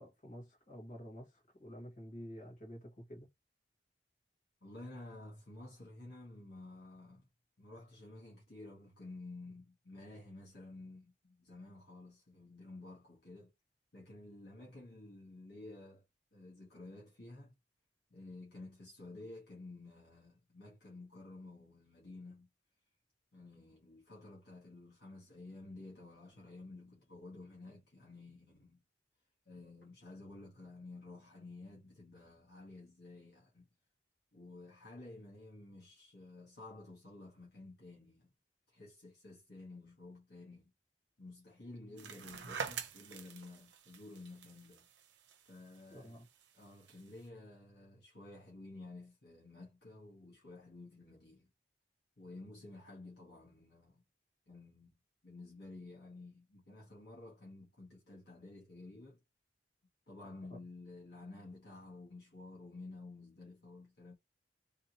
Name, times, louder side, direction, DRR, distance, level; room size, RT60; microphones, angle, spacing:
voice 1, 0.0-3.3 45.9-46.2, equal, 45° left, 1.8 m, -50 dB
voice 2, 4.6-7.3 7.6-13.5 13.9-16.0 16.3-17.6 18.1-22.5 23.3-28.8 29.5-33.7 34.3-38.3 38.7-40.7 41.2-44.9 45.5-46.2 46.5-51.5 52.2-54.0 54.5-55.0 55.2-59.2 60.1-64.1, left 2 dB, 65° left, 1.4 m, -52 dB
sound 1, 42.0-47.2, right 6 dB, 80° right, 0.7 m, -47 dB
3.4 x 2.9 x 2.8 m
head